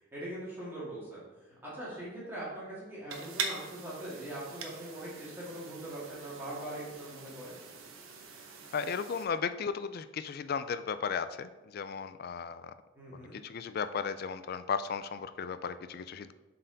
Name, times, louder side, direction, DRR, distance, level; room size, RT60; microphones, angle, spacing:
voice 1, 0.1-7.6 12.9-13.4, right 1 dB, 10° right, -8 dB, 2.0 m, -42 dB
sound 1, 3.1-9.3, right 5 dB, 80° right, 1.0 m, -43 dB
voice 2, 8.7-12.7 13.1-16.3, left 6 dB, 45° left, 12 dB, 0.3 m, -35 dB
7.5 x 4.3 x 4.0 m, 1.3 s
head